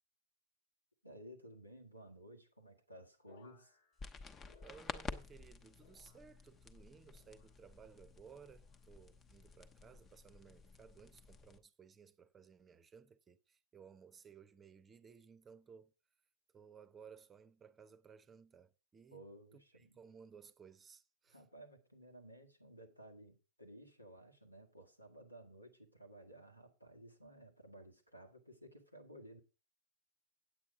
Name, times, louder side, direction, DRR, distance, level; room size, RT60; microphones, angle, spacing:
voice 1, 1.0-3.8 19.1-20.0 21.3-29.4, right 1 dB, 90° left, 1.8 m, -56 dB
sound 1, 3.3-5.5 5.8-6.6 7.1-7.8 8.4-8.9 9.8-10.2 11.1-11.4, left 5 dB, 60° left, 1.4 m, -69 dB
sound 2, 4.0-11.6, left 4 dB, 25° left, 0.9 m, -51 dB
voice 2, 4.6-15.9 16.5-19.2 19.5-21.4, right 6 dB, 20° right, 0.8 m, -59 dB
8.7 x 8.5 x 4.7 m
figure-of-eight pair, 90°, 0 cm